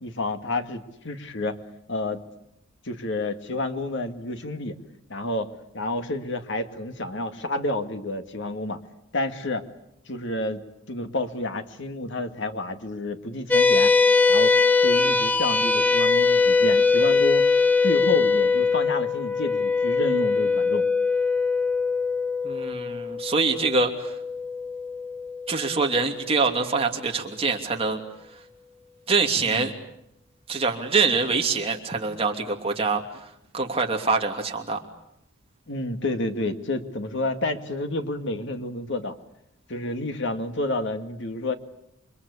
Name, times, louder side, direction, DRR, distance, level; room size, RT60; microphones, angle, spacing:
voice 1, 0.0-1.6 1.9-2.2 2.9-4.8 5.1-8.8 9.1-9.6 10.1-14.0 14.3-14.5 14.8-17.4 17.8-20.9 29.4-29.7 35.7-39.2 39.7-41.5, left 2 dB, 55° left, 7 dB, 2.2 m, -30 dB
sound 1, 13.5-26.1, left 4 dB, 10° left, 1.2 m, -22 dB
voice 2, 22.4-24.1 25.5-28.0 29.1-29.7 30.5-33.0 33.5-34.8, right 4 dB, 25° right, 2 dB, 2.9 m, -24 dB
29.0 x 24.5 x 8.5 m, 0.80 s
head